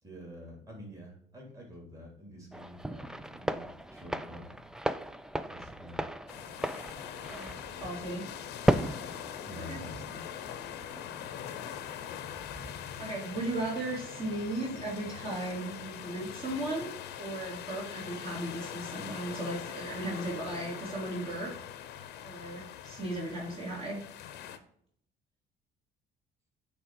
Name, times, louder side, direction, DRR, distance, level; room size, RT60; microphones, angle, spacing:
voice 1, 0.0-4.6 5.5-6.0 9.4-10.3, left 1 dB, 20° right, -2 dB, 3.0 m, -48 dB
sound 1, 2.5-13.1, right 1 dB, 5° right, 0.4 m, -36 dB
sound 2, 6.3-24.6, left 10 dB, 85° left, 0.8 m, -42 dB
voice 2, 7.3-8.2 9.7-9.8 13.0-16.9 17.2-21.5 22.2-24.0, right 1 dB, 35° right, -5 dB, 2.7 m, -36 dB
8.3 x 3.6 x 4.7 m, 0.67 s
cardioid pair, 110°, 17 cm